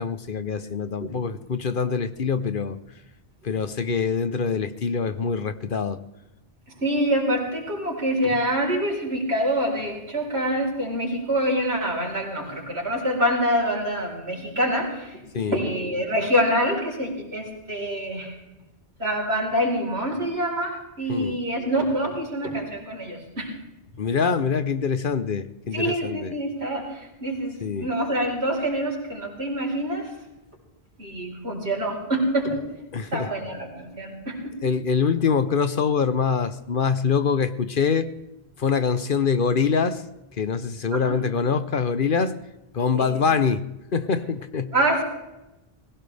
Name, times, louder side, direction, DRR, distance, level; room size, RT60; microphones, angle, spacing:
voice 1, 0.0-2.8 3.4-6.0 15.3-15.6 21.1-21.4 24.0-26.3 27.6-27.9 32.9-33.3 34.6-38.1 38.6-40.0 40.4-42.4 42.7-44.7, left 5 dB, 55° left, 11 dB, 1.0 m, -24 dB
voice 2, 6.8-18.3 19.0-23.5 25.7-30.1 31.0-32.6 33.1-34.5 40.9-41.2 42.9-43.1 44.7-45.0, equal, 75° right, -1 dB, 4.7 m, -26 dB
20.0 x 17.0 x 3.4 m, 0.96 s
omnidirectional pair, 1.1 m